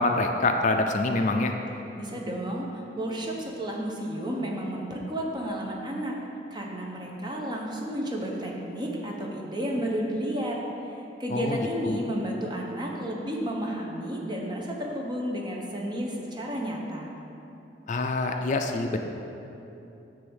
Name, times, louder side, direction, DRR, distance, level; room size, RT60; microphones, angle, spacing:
voice 1, 0.0-1.5 11.3-11.6 11.9-12.0 17.9-19.0, left 2 dB, 45° left, 5 dB, 0.4 m, -25 dB
voice 2, 2.0-6.1 6.5-10.6 11.2-17.1, equal, 25° right, -1 dB, 1.0 m, -32 dB
9.9 x 3.5 x 7.1 m, 2.9 s
head